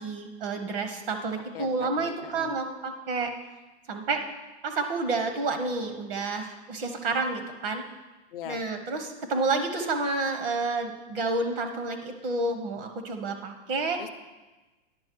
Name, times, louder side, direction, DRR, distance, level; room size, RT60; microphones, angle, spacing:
voice 1, 0.0-3.3 3.9-4.2 4.6-7.8 8.4-14.0, right 3 dB, 55° right, 5 dB, 1.0 m, -29 dB
voice 2, 1.5-2.6 8.3-8.6 14.0-14.1, left 11 dB, 55° left, 10 dB, 0.6 m, -40 dB
10.5 x 5.6 x 4.5 m, 1.1 s
supercardioid pair, 170°, 34 cm